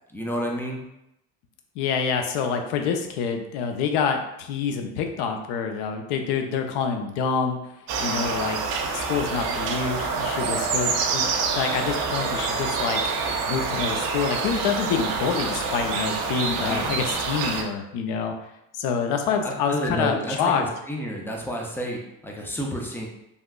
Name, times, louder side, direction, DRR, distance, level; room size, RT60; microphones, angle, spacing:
voice 1, 0.1-0.8 16.6-17.0 19.4-23.1, equal, 5° left, -1 dB, 0.4 m, -30 dB
voice 2, 1.8-7.6 8.0-8.6 8.9-11.3 11.5-13.0 13.5-18.3 18.8-20.6, left 6 dB, 55° left, 5 dB, 0.6 m, -27 dB
sound 1, 7.9-17.6, right 4 dB, 75° right, 0.6 m, -27 dB
3.4 x 2.5 x 2.3 m, 0.83 s
hypercardioid pair, 65°, 49 cm